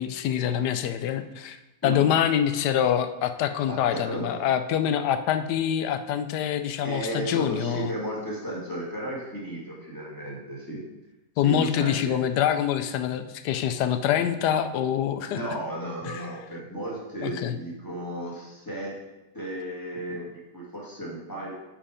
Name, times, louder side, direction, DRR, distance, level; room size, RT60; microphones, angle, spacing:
voice 1, 0.0-1.6 1.8-7.9 11.4-15.4 16.1-16.3 17.2-17.6, left 9 dB, 80° left, 10 dB, 1.2 m, -25 dB
voice 2, 3.7-4.4 6.8-10.8 11.4-12.2 15.3-19.0 19.3-21.5, right 1 dB, 10° left, -5 dB, 2.1 m, -34 dB
8.8 x 4.9 x 5.0 m, 1.0 s
omnidirectional pair, 1.8 m